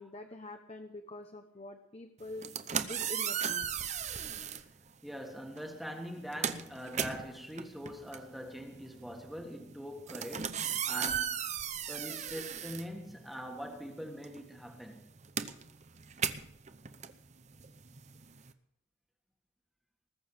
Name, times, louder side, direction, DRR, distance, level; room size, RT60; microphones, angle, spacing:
voice 1, 0.0-2.5 2.8-3.8, left 2 dB, 30° left, 0.9 m, -46 dB
sound 1, 2.3-4.7 5.5-5.7 6.1-13.6 13.9-18.5, right 8 dB, 35° right, 0.8 m, -36 dB
voice 2, 5.0-11.4 11.9-15.0, equal, ahead, 1.6 m, -43 dB
20.0 x 7.1 x 8.1 m
head